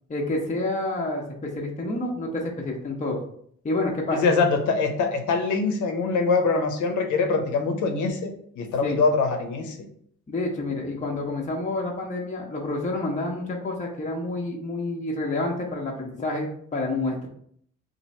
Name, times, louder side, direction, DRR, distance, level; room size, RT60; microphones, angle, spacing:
voice 1, 0.1-3.2 3.6-4.2 8.8-9.0 10.3-17.3, left 2 dB, 25° left, -1 dB, 0.8 m, -28 dB
voice 2, 4.1-9.9, left 4 dB, 80° left, 6 dB, 0.8 m, -24 dB
3.0 x 2.6 x 4.1 m, 0.65 s
cardioid pair, 90°, 30 cm